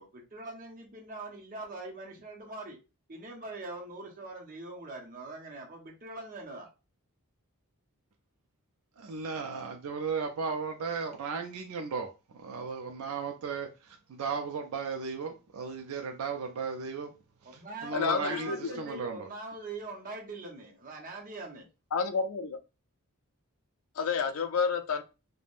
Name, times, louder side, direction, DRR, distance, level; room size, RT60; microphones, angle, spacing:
voice 1, 0.0-2.8 3.1-6.7 17.4-21.7, right 2 dB, 40° right, 0.7 m, -43 dB
voice 2, 9.0-17.1 17.8-19.2, right 5 dB, 75° right, 0.4 m, -35 dB
voice 3, 17.9-18.7 21.9-22.6 24.0-25.0, left 5 dB, 70° left, 0.4 m, -29 dB
3.3 x 2.1 x 2.4 m
head